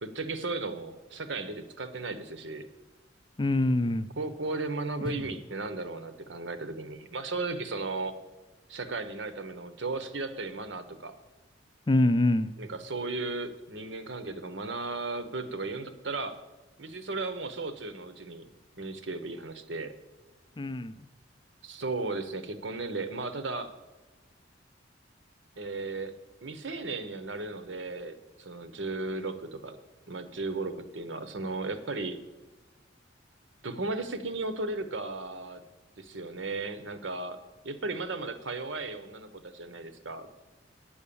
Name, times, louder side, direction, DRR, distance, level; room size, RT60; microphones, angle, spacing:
voice 1, 0.0-2.7 4.2-8.1 8.7-11.1 12.6-16.4 16.8-18.5 18.8-19.9 21.6-23.7 25.6-26.1 26.4-29.8 30.1-32.2 33.6-35.6 36.0-37.4 37.6-40.3, right 3 dB, 75° right, 10 dB, 0.9 m, -35 dB
voice 2, 3.4-4.1 5.0-5.2 11.9-12.5 20.6-20.9, left 2 dB, 25° left, 13 dB, 0.4 m, -25 dB
9.4 x 7.1 x 6.9 m, 1.2 s
head